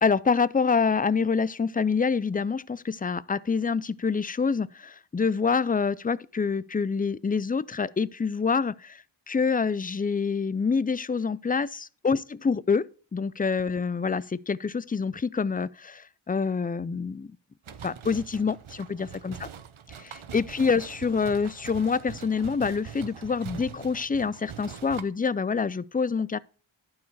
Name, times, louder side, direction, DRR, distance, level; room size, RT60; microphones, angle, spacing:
voice 1, 0.0-12.2 12.4-12.8 13.1-17.3 17.8-19.4 20.0-26.4, left 5 dB, 20° left, 0.3 m, -26 dB
sound 1, 17.6-25.0, right 8 dB, 90° right, 0.8 m, -43 dB
11.5 x 4.8 x 4.6 m
wide cardioid pair, 60°, 47 cm